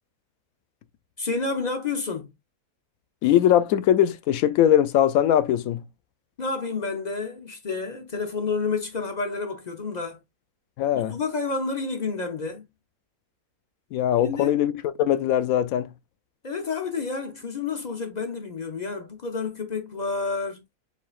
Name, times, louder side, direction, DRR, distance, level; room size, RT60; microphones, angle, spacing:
voice 1, 1.2-2.3 6.4-10.2 11.1-12.6 14.2-14.6 16.4-20.6, left 4 dB, 50° left, 0.5 m, -29 dB
voice 2, 3.2-5.8 10.8-11.2 13.9-15.9, left 11 dB, 80° left, 1.0 m, -21 dB
7.2 x 2.6 x 2.3 m
omnidirectional pair, 1.5 m